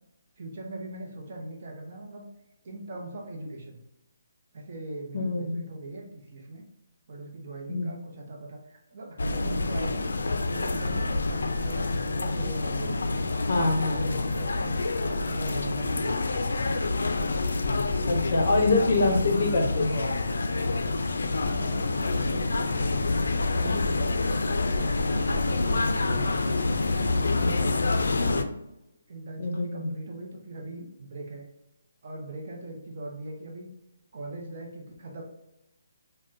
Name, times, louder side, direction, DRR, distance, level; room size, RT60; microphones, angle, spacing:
voice 1, 0.4-2.3 2.6-3.8 4.5-6.6 7.1-10.1 10.5-13.3 13.9-16.7 21.4-23.1 23.5-24.2 24.7-26.6 27.0-28.6 29.1-31.5 32.0-33.7 34.1-35.2, right 2 dB, 35° right, 0 dB, 0.5 m, -40 dB
voice 2, 5.1-5.6 7.7-7.9 13.5-14.2 18.1-20.2 27.4-27.5 29.4-29.9, left 2 dB, 45° left, 2 dB, 0.6 m, -25 dB
sound 1, 9.2-28.4, left 3 dB, 85° left, 0.3 m, -27 dB
3.5 x 2.1 x 2.6 m, 0.89 s
hypercardioid pair, 175°, 0 cm